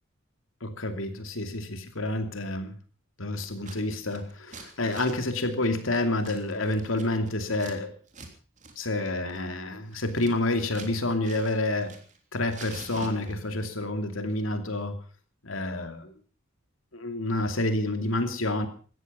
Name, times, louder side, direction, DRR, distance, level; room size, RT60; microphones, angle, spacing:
voice 1, 0.6-2.8 3.2-7.9 8.8-12.0 12.3-15.0 15.4-16.0 16.9-18.7, left 2 dB, 70° left, 7 dB, 2.7 m, -29 dB
Scissors, 3.4-3.8 4.0-7.8 8.1-8.3 8.6-8.7 9.1-10.9 11.2-12.2 12.5-13.6, right 3 dB, 40° right, 3.3 m, -46 dB
17.0 x 14.0 x 5.5 m, 0.41 s
head